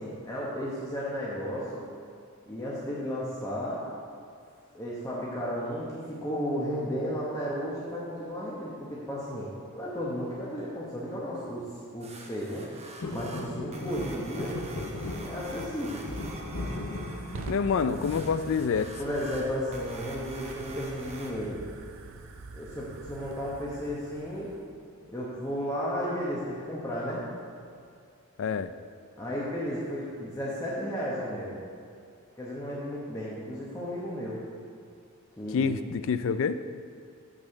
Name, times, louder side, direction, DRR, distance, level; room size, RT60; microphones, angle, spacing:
voice 1, 0.0-1.9 2.5-3.9 4.7-11.6 11.9-12.7 13.1-14.6 15.2-16.1 19.0-21.6 22.5-24.6 25.1-27.3 29.2-31.6 32.4-34.4 35.4-35.7, equal, 15° left, -7 dB, 1.0 m, -33 dB
sound 1, 12.0-21.3, right 3 dB, 30° right, 0.8 m, -46 dB
sound 2, 13.0-19.2 19.6-20.2 21.5-21.9 22.2-22.3 22.5-22.9 23.7-24.6 25.1-25.2, left 2 dB, 85° left, 0.9 m, -38 dB
Fire, 16.3-24.7, right 3 dB, 60° right, 0.5 m, -46 dB
voice 2, 17.5-18.9 28.4-28.7 35.5-36.6, left 5 dB, 60° left, 12 dB, 0.4 m, -27 dB
6.3 x 6.2 x 6.4 m, 2.3 s
head